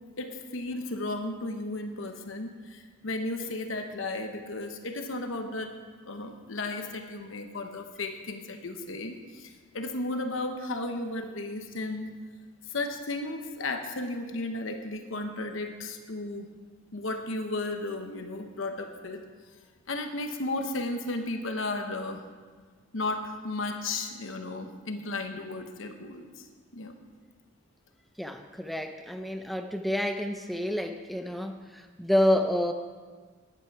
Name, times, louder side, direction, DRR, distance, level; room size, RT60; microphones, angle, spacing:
voice 1, 0.2-5.7 6.0-12.2 12.7-16.5 16.9-19.2 19.9-22.2 22.9-26.5 26.7-27.0, left 2 dB, 75° left, 5 dB, 1.0 m, -34 dB
voice 2, 28.2-32.7, left 1 dB, ahead, 6 dB, 0.5 m, -28 dB
14.0 x 10.5 x 4.7 m, 1.5 s
head